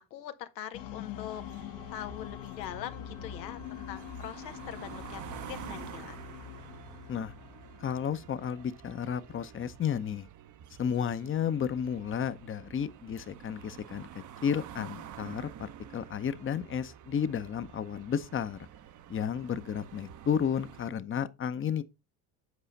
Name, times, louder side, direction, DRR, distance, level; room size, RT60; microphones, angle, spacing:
voice 1, 0.1-1.4 1.9-5.2 5.5-6.2, left 11 dB, 90° left, 0.9 m, -42 dB
sound 1, 0.7-8.9, left 11 dB, 60° left, 1.0 m, -44 dB
sound 2, 1.3-20.9, right 10 dB, 40° right, 0.7 m, -49 dB
voice 2, 7.8-10.3 10.8-18.6 19.1-21.8, left 8 dB, 25° left, 0.7 m, -32 dB
8.2 x 4.9 x 4.0 m
hypercardioid pair, 70°, 49 cm